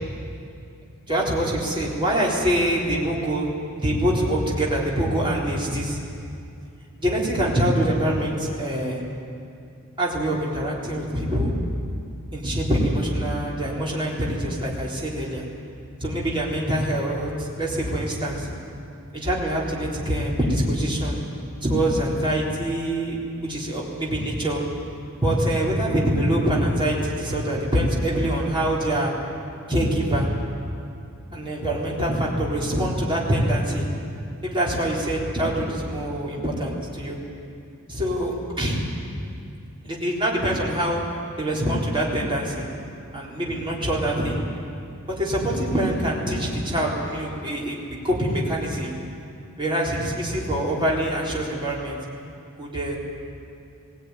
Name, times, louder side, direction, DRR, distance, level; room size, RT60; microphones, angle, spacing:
voice 1, 1.1-6.0 7.0-9.0 10.0-11.5 12.3-15.4 16.0-18.5 19.1-21.2 21.6-24.6 25.2-29.1 29.7-30.3 31.3-33.9 34.4-37.2 37.9-38.8 39.8-41.0 41.4-42.6 43.1-44.4 45.2-47.8 48.0-48.9 49.6-52.0 52.6-53.0, right 1 dB, 25° right, -4 dB, 3.9 m, -24 dB
18.5 x 18.0 x 9.6 m, 2.5 s
head